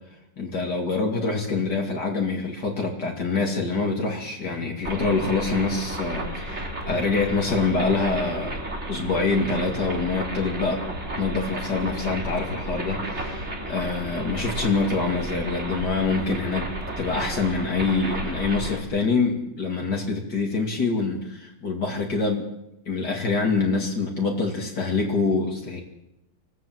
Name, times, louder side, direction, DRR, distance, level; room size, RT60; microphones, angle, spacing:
voice 1, 0.4-8.6 8.9-10.8 11.2-22.5 22.9-25.8, left 4 dB, 65° left, 1 dB, 3.2 m, -25 dB
sound 1, 4.8-18.8, right 1 dB, 40° right, 3.2 m, -32 dB
25.5 x 17.0 x 7.7 m, 0.86 s
omnidirectional pair, 1.9 m